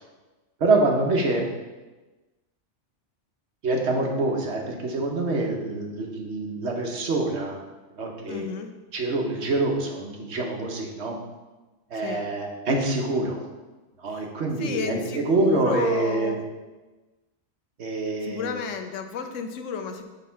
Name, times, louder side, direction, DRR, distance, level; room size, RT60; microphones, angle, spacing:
voice 1, 0.6-1.4 3.6-7.6 8.0-8.5 8.9-11.2 11.9-13.4 14.0-16.4 17.8-18.5, right 2 dB, 65° right, 1 dB, 1.2 m, -25 dB
voice 2, 8.3-8.7 11.9-12.2 14.1-14.3 14.6-16.4 18.2-20.0, left 6 dB, 90° left, 7 dB, 1.0 m, -32 dB
6.4 x 3.6 x 5.6 m, 1.2 s
omnidirectional pair, 1.2 m